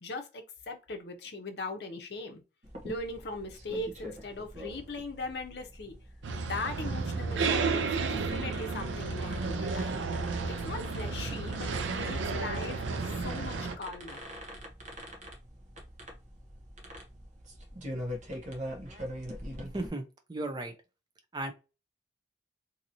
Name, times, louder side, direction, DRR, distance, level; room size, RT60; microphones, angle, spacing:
voice 1, 0.0-2.4 2.8-5.9 6.5-10.0 10.5-14.2, left 2 dB, 60° left, 0.7 m, -39 dB
sound 1, 2.6-19.9, equal, 40° right, 0.9 m, -44 dB
sound 2, 6.2-13.7, right 4 dB, 85° right, 0.4 m, -32 dB
voice 2, 19.7-20.7 21.3-21.5, right 2 dB, 25° right, 0.5 m, -35 dB
2.9 x 2.7 x 2.6 m
head